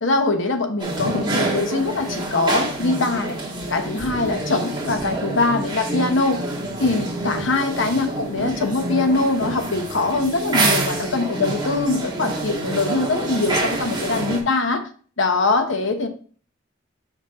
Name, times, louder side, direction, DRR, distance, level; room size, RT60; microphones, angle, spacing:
voice 1, 0.0-3.4 3.7-6.5 6.8-14.9 15.2-16.1, left 3 dB, 70° left, 6 dB, 1.1 m, -22 dB
sound 1, 0.8-14.4, right 2 dB, 20° right, 1.5 m, -27 dB
5.9 x 5.1 x 3.7 m, 0.41 s
head